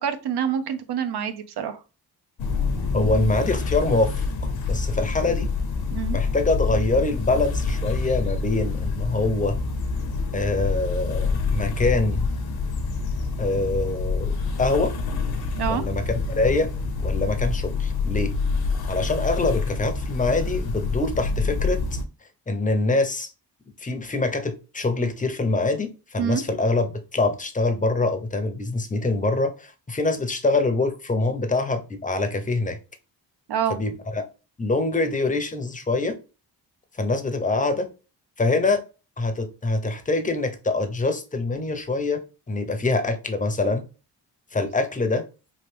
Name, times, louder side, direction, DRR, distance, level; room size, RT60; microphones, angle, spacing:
voice 1, 0.0-1.8 5.9-6.2 15.6-15.8 26.2-26.4 33.5-33.8, right 8 dB, 65° right, 0.6 m, -26 dB
sound 1, 2.4-22.0, left 4 dB, 60° left, 0.7 m, -27 dB
voice 2, 2.9-4.2 4.6-5.5 6.1-9.6 10.3-12.3 13.4-14.9 15.7-16.7 17.0-18.4 18.9-22.0 22.5-23.3 23.8-32.8 33.7-34.2 34.6-36.2 37.0-37.9 38.4-38.8 39.2-42.2 42.5-43.8 44.5-45.2, left 2 dB, 20° left, 0.6 m, -24 dB
3.2 x 2.5 x 3.2 m
cardioid pair, 70°, 43 cm